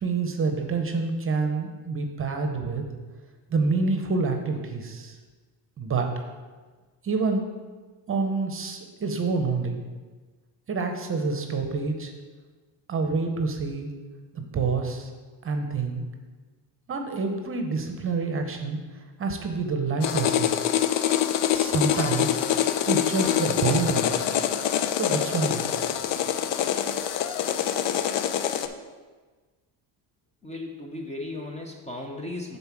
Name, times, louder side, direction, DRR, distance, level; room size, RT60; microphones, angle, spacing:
voice 1, 0.0-2.8 3.5-5.2 5.8-6.1 7.0-7.5 8.1-9.8 10.7-12.1 12.9-13.9 14.3-15.1 15.4-16.0 16.9-20.5 21.5-22.4 22.9-24.1 25.0-25.7, right 4 dB, 30° right, 5 dB, 0.8 m, -27 dB
sound 1, 20.0-28.7, left 10 dB, 65° left, 0.6 m, -25 dB
voice 2, 30.4-32.6, left 2 dB, 15° left, 1 dB, 0.6 m, -36 dB
7.2 x 4.0 x 6.0 m, 1.4 s
cardioid pair, 125°, 45 cm